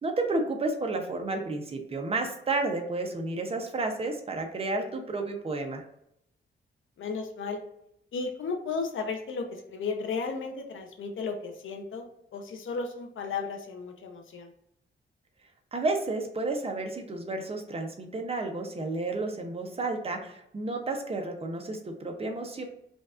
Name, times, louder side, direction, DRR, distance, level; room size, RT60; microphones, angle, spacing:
voice 1, 0.0-5.8 15.7-22.6, right 2 dB, 30° right, 3 dB, 0.7 m, -31 dB
voice 2, 7.0-7.6 8.1-14.5, left 4 dB, 75° left, 4 dB, 0.6 m, -34 dB
5.1 x 2.4 x 2.4 m, 0.76 s
wide cardioid pair, 135°, 20 cm